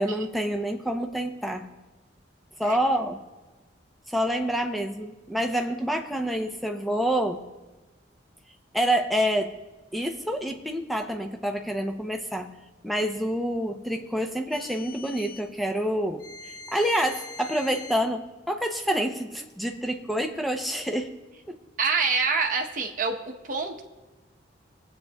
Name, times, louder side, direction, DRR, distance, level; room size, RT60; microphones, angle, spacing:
voice 1, 0.0-1.7 2.6-3.2 4.1-7.4 8.7-9.5 9.9-12.5 12.8-16.2 16.7-21.1 21.5-21.6, equal, ahead, 4 dB, 0.6 m, -27 dB
sound 1, 14.5-15.5 16.2-18.0, left 3 dB, 25° left, 0.9 m, -43 dB
voice 2, 21.8-23.8, right 5 dB, 45° right, 3 dB, 0.9 m, -26 dB
22.5 x 8.3 x 2.3 m, 1.2 s
head